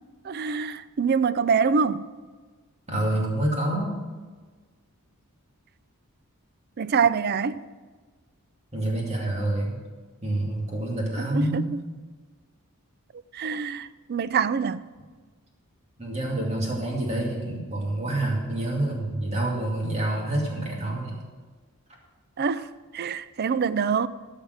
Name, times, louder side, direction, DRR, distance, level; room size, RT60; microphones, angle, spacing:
voice 1, 0.2-2.1 6.8-7.6 11.2-11.8 13.3-14.8 22.4-22.7 22.9-24.1, right 6 dB, 45° right, 0.4 m, -25 dB
voice 2, 2.9-4.0 8.7-9.8 10.2-11.7 16.0-21.3, right 1 dB, 30° right, 2.5 m, -27 dB
14.0 x 5.6 x 6.5 m
head